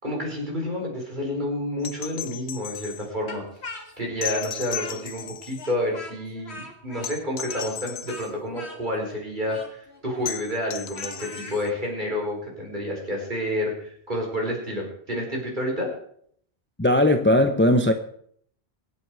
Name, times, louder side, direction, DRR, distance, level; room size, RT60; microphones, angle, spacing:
voice 1, 0.0-3.4 4.0-15.9, left 1 dB, 45° right, -1 dB, 4.9 m, -29 dB
sound 1, 1.8-3.1 4.2-5.7 7.0-8.3 10.3-11.7 13.5-13.6, left 9 dB, 70° left, 1.0 m, -36 dB
Speech, 3.3-5.3 5.6-11.6, left 2 dB, 90° left, 2.2 m, -41 dB
voice 2, 16.8-17.9, left 1 dB, 10° left, 7 dB, 0.7 m, -18 dB
24.5 x 8.3 x 4.8 m, 0.65 s
omnidirectional pair, 1.1 m